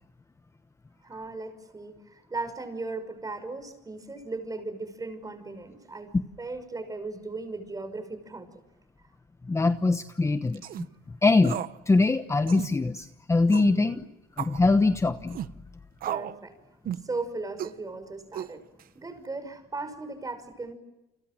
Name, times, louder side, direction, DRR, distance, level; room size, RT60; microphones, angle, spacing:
voice 1, 1.0-8.5 10.9-11.0 13.7-14.0 16.1-16.5 17.0-18.6 18.9-20.8, right 3 dB, 20° right, 10 dB, 5.6 m, -37 dB
voice 2, 9.5-10.9 11.2-14.0 14.4-15.4, left 3 dB, 15° left, 10 dB, 1.1 m, -23 dB
sound 1, 10.5-10.9 11.4-11.8 12.0-12.1 12.5-12.7 13.5-13.8 14.4-14.6 15.3-15.5 16.0-16.4 16.9-17.1 17.6-17.8 18.3-18.8, right 11 dB, 60° right, 0.9 m, -34 dB
30.0 x 26.0 x 7.4 m, 0.97 s
cardioid pair, 110°, 17 cm